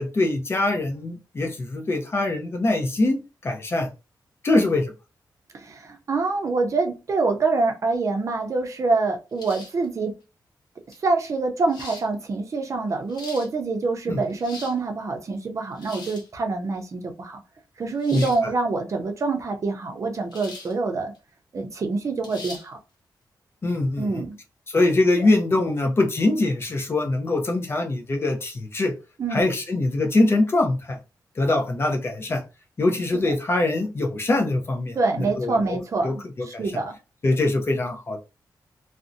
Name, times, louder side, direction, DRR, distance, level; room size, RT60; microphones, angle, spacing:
voice 1, 0.0-3.9 4.4-4.9 14.1-14.2 18.1-18.5 23.6-24.2 24.7-28.9 29.3-31.0 31.4-32.4 32.8-35.8 36.0-36.6 37.2-38.2, left 2 dB, 35° left, 3 dB, 0.6 m, -23 dB
voice 2, 5.5-10.1 11.0-17.4 17.8-21.1 21.5-22.8 24.0-24.4 25.2-25.3 29.2-29.5 33.1-33.2 34.9-37.0, right 3 dB, 45° right, 4 dB, 0.5 m, -26 dB
sound 1, 9.4-9.9 10.9-11.0 11.7-12.1 12.9-13.5 14.2-14.8 15.8-16.3 18.0-18.4 20.3-20.7 21.1-21.2 22.2-22.7, left 2 dB, 75° left, 0.7 m, -40 dB
2.6 x 2.0 x 2.5 m, 0.30 s
wide cardioid pair, 145°, 7 cm